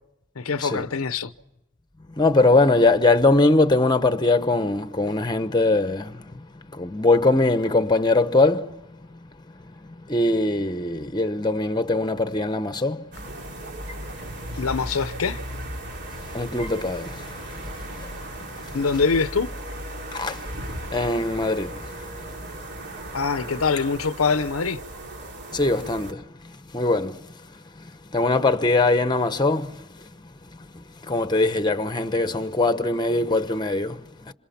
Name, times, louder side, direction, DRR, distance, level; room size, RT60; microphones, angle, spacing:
voice 1, 0.4-1.3 14.6-15.4 18.7-19.5 23.1-24.8, left 4 dB, 80° left, 0.8 m, -24 dB
voice 2, 2.2-6.5 6.7-8.8 9.1-9.2 9.6-13.1 16.3-17.6 18.0-18.1 18.7-18.8 20.1-20.5 20.9-22.2 25.5-27.3 27.8-30.1 30.7-34.3, left 2 dB, 20° left, 1.0 m, -22 dB
sound 1, 13.1-26.1, right 1 dB, 55° right, 3.4 m, -36 dB
27.5 x 26.5 x 5.8 m
head